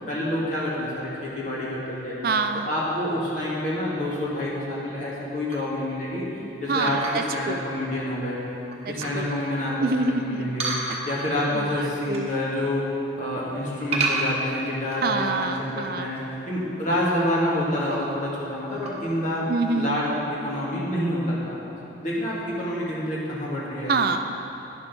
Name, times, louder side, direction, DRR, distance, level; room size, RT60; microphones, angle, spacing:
voice 1, 0.1-2.2 2.6-8.4 8.9-10.7 11.0-12.8 13.2-16.2 16.5-19.5 19.7-21.6 22.0-23.9, left 1 dB, 40° left, -6 dB, 2.1 m, -28 dB
voice 2, 2.2-2.7 6.7-7.6 8.8-9.3 9.8-10.5 10.9-11.0 11.5-12.3 15.0-16.1 19.5-20.0 23.9-24.3, right 4 dB, 50° right, 7 dB, 0.4 m, -26 dB
sound 1, 5.5-5.8 6.8-7.4 8.0-8.1 8.6-9.3 10.6-11.4 11.8-12.4 12.6-13.0 13.9-15.4 15.8-15.9 16.1-16.2 16.8-17.1 17.8-18.3 18.7-18.9, right 3 dB, 35° right, 1.2 m, -30 dB
10.0 x 6.2 x 6.1 m, 3.0 s
head